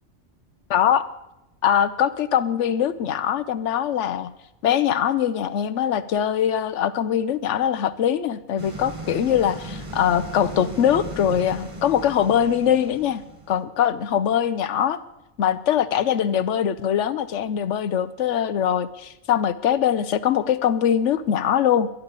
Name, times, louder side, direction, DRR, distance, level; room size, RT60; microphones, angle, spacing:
voice 1, 0.7-1.0 1.6-4.3 4.6-15.0 15.4-21.9, left 9 dB, 75° left, 14 dB, 1.0 m, -22 dB
sound 1, 8.6-13.6, right 1 dB, 25° right, 1.4 m, -37 dB
22.0 x 11.0 x 4.0 m, 0.91 s
omnidirectional pair, 1.3 m